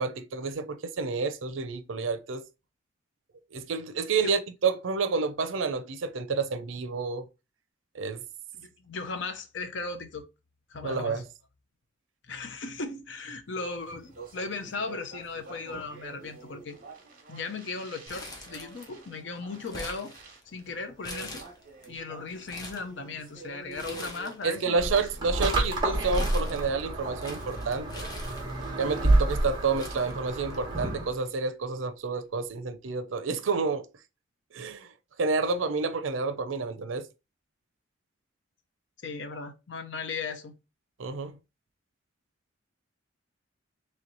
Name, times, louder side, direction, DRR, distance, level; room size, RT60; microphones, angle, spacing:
voice 1, 0.0-2.4 3.5-7.3 7.9-8.2 10.8-11.2 24.4-28.1 28.8-33.9 34.5-34.9 35.2-37.1 41.0-41.4, right 4 dB, 85° right, 0.5 m, -29 dB
voice 2, 8.5-10.2 10.7-11.2 12.2-16.8 17.3-20.1 20.5-21.4 21.9-24.8 39.0-40.5, left 4 dB, 65° left, 0.7 m, -37 dB
Speech, 13.6-26.0, right 4 dB, 45° right, 1.2 m, -49 dB
Crumpling crinkling, 18.1-19.1 19.3-20.6 21.0-21.9 22.3-22.9 23.7-24.5 24.8-28.8 29.4-29.5 29.8-30.8 31.1-31.2 32.2-32.4, left 1 dB, 20° left, 0.8 m, -43 dB
sound 1, 24.8-31.1, right 2 dB, 25° right, 1.1 m, -28 dB
3.2 x 3.1 x 3.9 m
head